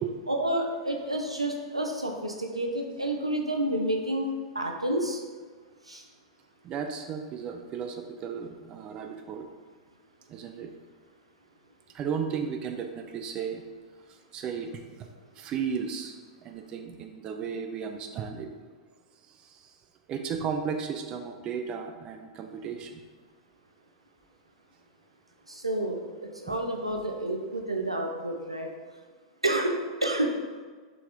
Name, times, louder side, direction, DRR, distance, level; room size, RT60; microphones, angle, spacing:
voice 1, 0.3-4.3 4.5-5.2 5.9-6.0 25.5-28.7 29.4-30.3, right 1 dB, 85° right, 2 dB, 0.5 m, -29 dB
voice 2, 6.6-9.5 10.3-10.7 11.9-13.6 14.3-15.1 15.4-18.5 19.4-19.6 20.1-23.0 26.5-26.6, right 6 dB, 30° right, 5 dB, 0.3 m, -34 dB
4.4 x 3.8 x 2.5 m, 1.5 s
figure-of-eight pair, 95°, 3 cm